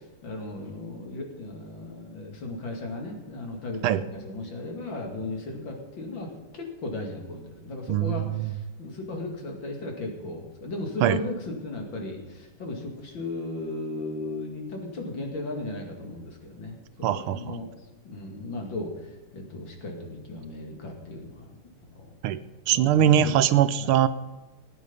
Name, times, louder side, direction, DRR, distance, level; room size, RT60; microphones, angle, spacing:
voice 1, 0.2-17.7 18.0-19.1 19.3-21.6 21.9-22.1 22.7-23.3 23.8-23.9, left 2 dB, 60° left, 2 dB, 3.0 m, -36 dB
voice 2, 7.9-8.5 11.0-11.2 17.0-17.6 22.2-22.4 22.7-24.1, right 10 dB, 85° right, 13 dB, 1.6 m, -22 dB
18.0 x 9.7 x 5.5 m, 1.1 s
omnidirectional pair, 2.4 m